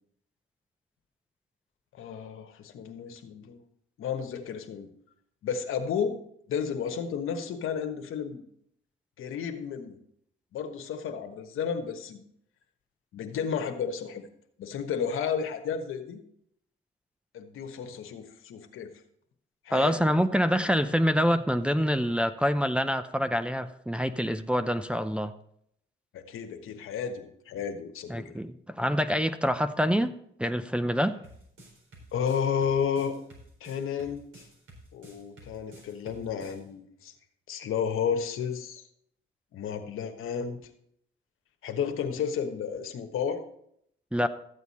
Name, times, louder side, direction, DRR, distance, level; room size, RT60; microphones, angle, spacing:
voice 1, 1.9-3.6 4.0-4.9 5.4-6.2 6.5-8.4 9.2-10.0 10.5-12.2 13.1-14.3 14.6-16.2 17.3-19.0 19.6-20.1 26.1-28.3 32.1-33.2 33.6-34.4 34.9-37.1 37.5-38.8 39.5-40.6 41.6-43.4, left 7 dB, 80° left, 6 dB, 1.2 m, -32 dB
voice 2, 19.7-25.3 28.1-31.2 44.1-44.3, equal, 5° right, 7 dB, 0.6 m, -26 dB
sound 1, 31.2-36.6, right 1 dB, 75° right, 4.4 m, -51 dB
13.5 x 8.0 x 4.2 m, 0.71 s
cardioid pair, 85°, 21 cm